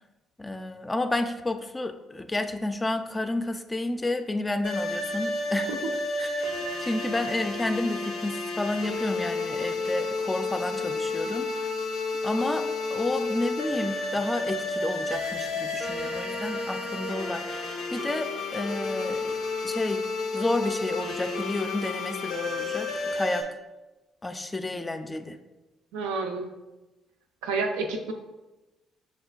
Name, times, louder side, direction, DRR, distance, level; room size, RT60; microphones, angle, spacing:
voice 1, 0.4-5.7 6.2-6.5 6.8-11.7 12.2-19.4 19.6-20.0 20.3-23.5 24.2-25.4, left 2 dB, 20° left, 8 dB, 0.3 m, -31 dB
sound 1, 4.6-23.4, left 3 dB, 80° left, 0.5 m, -31 dB
voice 2, 25.9-26.5 27.4-28.1, right 3 dB, 85° right, 4 dB, 0.3 m, -29 dB
6.0 x 2.2 x 2.3 m, 1.1 s
hypercardioid pair, 55°, 0 cm